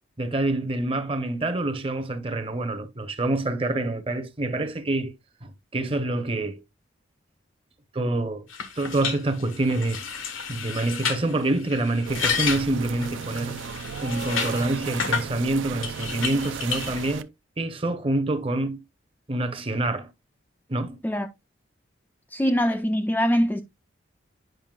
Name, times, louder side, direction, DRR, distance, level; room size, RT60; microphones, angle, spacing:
voice 1, 0.2-5.1 5.4-6.6 7.9-8.4 8.8-10.1 10.5-13.6 14.0-17.3 17.6-18.8 19.3-20.1 20.7-21.0, right 2 dB, 25° right, 0.7 m, -26 dB
sound 1, 8.5-15.3 15.8-17.1, left 6 dB, 85° left, 1.1 m, -31 dB
sound 2, 12.0-17.2, right 6 dB, 70° right, 0.4 m, -35 dB
voice 2, 22.3-23.6, equal, 10° left, 0.3 m, -23 dB
8.9 x 5.6 x 2.3 m
head